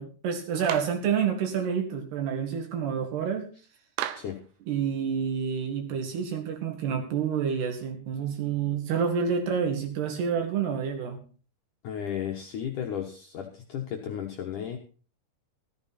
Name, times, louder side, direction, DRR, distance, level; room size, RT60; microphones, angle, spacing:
voice 1, 0.0-3.5 4.7-11.2, right 7 dB, 65° right, 4 dB, 4.0 m, -28 dB
Clapping, 0.6-1.0 4.0-4.4, right 12 dB, 85° right, 3.2 m, -34 dB
voice 2, 11.8-14.8, left 9 dB, 70° left, 1 dB, 2.0 m, -34 dB
14.0 x 13.5 x 4.3 m, 0.38 s
omnidirectional pair, 5.3 m